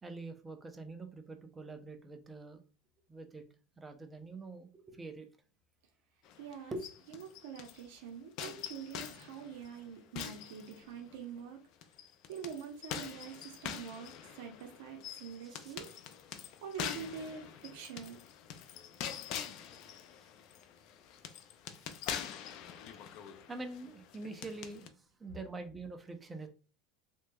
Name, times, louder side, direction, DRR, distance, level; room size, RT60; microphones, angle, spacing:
voice 1, 0.0-2.6 3.1-3.4 3.8-5.3 6.7-6.8 15.4-15.7 16.3-16.4 23.5-26.5, right 3 dB, 15° right, 6 dB, 0.5 m, -45 dB
sound 1, 6.2-7.9 8.4-11.2 11.8-24.9, left 9 dB, 55° left, 0.4 m, -45 dB
voice 2, 6.4-6.8 7.1-11.6 12.3-15.9 16.6-18.2, right 7 dB, 85° right, 3 dB, 0.7 m, -45 dB
3.3 x 3.0 x 2.2 m, 0.36 s
supercardioid pair, 135°, 0 cm